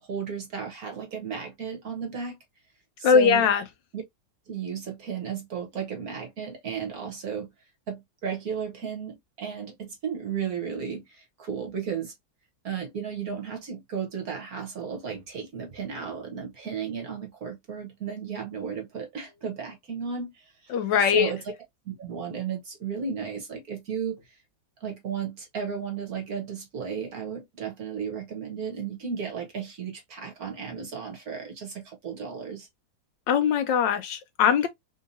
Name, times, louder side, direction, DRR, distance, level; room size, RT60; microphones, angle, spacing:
voice 1, 0.0-2.4 3.0-3.5 3.9-4.0 4.5-7.5 7.9-12.1 12.6-20.8 21.1-21.5 21.8-24.4 24.8-32.7, right 6 dB, 55° right, 1.2 m, -34 dB
voice 2, 3.0-3.6 20.7-21.3 33.3-34.7, left 7 dB, 75° left, 1.1 m, -21 dB
3.5 x 2.7 x 2.6 m
omnidirectional pair, 2.2 m